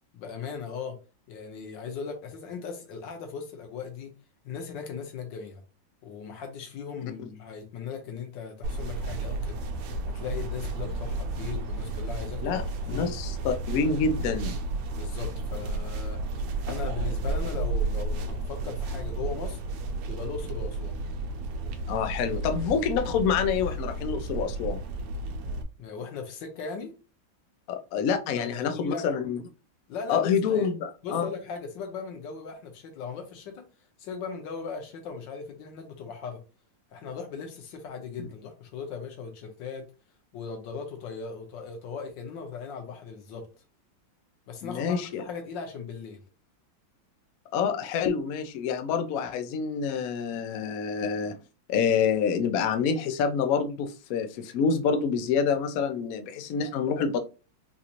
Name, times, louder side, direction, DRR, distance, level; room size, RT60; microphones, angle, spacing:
voice 1, 0.1-1.0 1.3-4.1 4.4-5.6 6.0-9.6 10.1-12.6 12.9-13.1 14.9-16.2 16.7-19.6 20.1-21.0 25.8-26.9 28.3-29.1 29.9-30.7 31.0-33.6 34.0-36.4 36.9-39.9 40.3-43.4 44.5-46.2, left 5 dB, 70° left, 1.5 m, -38 dB
sound 1, 8.6-25.6, right 2 dB, 70° right, 1.1 m, -32 dB
voice 2, 12.9-14.5 21.9-24.8 27.7-29.4 30.1-31.3 44.6-45.2 47.5-51.4 51.7-57.2, left 6 dB, 90° left, 0.7 m, -27 dB
4.1 x 2.5 x 2.9 m
omnidirectional pair, 2.1 m